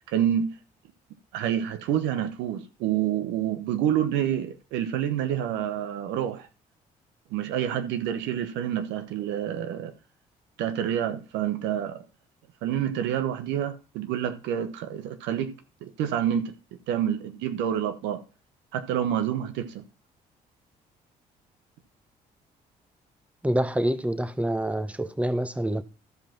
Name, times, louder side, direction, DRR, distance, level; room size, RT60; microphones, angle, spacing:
voice 1, 0.1-0.5 1.3-6.5 7.3-9.9 10.6-12.0 12.6-16.6 16.9-18.2 18.7-19.8, right 10 dB, 80° right, 1.1 m, -28 dB
voice 2, 23.4-25.8, right 1 dB, 5° right, 1.2 m, -26 dB
13.5 x 5.1 x 5.9 m
hypercardioid pair, 55°, 18 cm